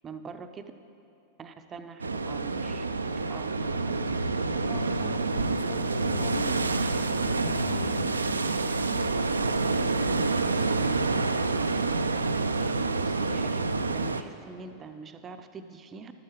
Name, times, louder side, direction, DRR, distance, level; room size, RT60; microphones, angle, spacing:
voice 1, 0.0-0.7 1.4-2.9 3.3-3.8 12.5-13.6 13.9-16.1, right 5 dB, 25° right, 8 dB, 0.6 m, -44 dB
sound 1, 2.0-14.2, right 3 dB, 75° right, 0.4 m, -27 dB
voice 2, 4.7-8.4, left 9 dB, 50° left, 9 dB, 0.7 m, -40 dB
13.0 x 11.5 x 3.1 m, 2.7 s
figure-of-eight pair, 90°, 0 cm